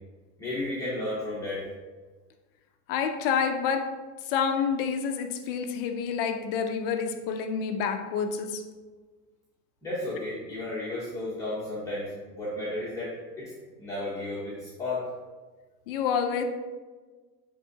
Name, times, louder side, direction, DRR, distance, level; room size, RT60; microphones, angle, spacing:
voice 1, 0.4-1.6 9.8-13.5 13.8-15.1, left 2 dB, 5° left, -9 dB, 0.8 m, -33 dB
voice 2, 2.9-3.9 4.2-8.6 15.9-16.4, left 6 dB, 40° left, 5 dB, 0.5 m, -28 dB
9.6 x 3.7 x 2.8 m, 1.3 s
supercardioid pair, 155°, 48 cm